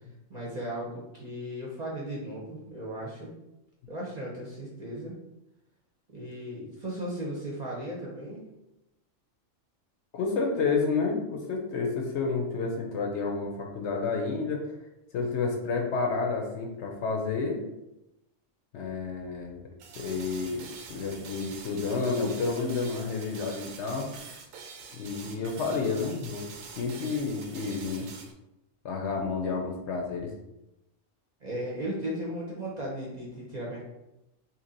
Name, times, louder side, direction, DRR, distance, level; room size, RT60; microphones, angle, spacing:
voice 1, 0.3-3.3 3.9-5.1 6.1-8.4 31.4-33.9, right 1 dB, 35° right, -5 dB, 0.8 m, -36 dB
voice 2, 10.1-14.8 15.1-17.6 18.7-19.7 20.0-20.6 20.9-24.1 24.9-26.4 26.8-28.1 28.8-30.3, left 4 dB, 65° left, 1 dB, 0.9 m, -30 dB
sound 1, 19.8-28.3, right 5 dB, 80° right, 1.0 m, -45 dB
3.0 x 2.7 x 3.8 m, 0.90 s
omnidirectional pair, 1.4 m